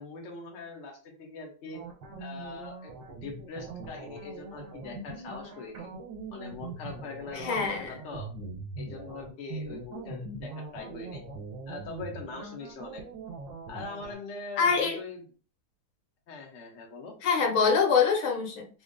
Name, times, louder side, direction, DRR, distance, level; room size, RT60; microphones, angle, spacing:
voice 1, 0.0-1.8 2.2-5.9 6.3-8.3 8.8-11.2 11.7-13.0 13.7-15.2 16.3-17.1, left 3 dB, 50° left, 0 dB, 1.0 m, -42 dB
sound 1, 1.7-14.1, right 3 dB, 70° right, 1.6 m, -41 dB
voice 2, 7.3-7.9 14.6-15.0 17.2-18.7, left 5 dB, 85° left, 1 dB, 1.8 m, -25 dB
3.9 x 2.0 x 3.6 m, 0.38 s
omnidirectional pair, 2.2 m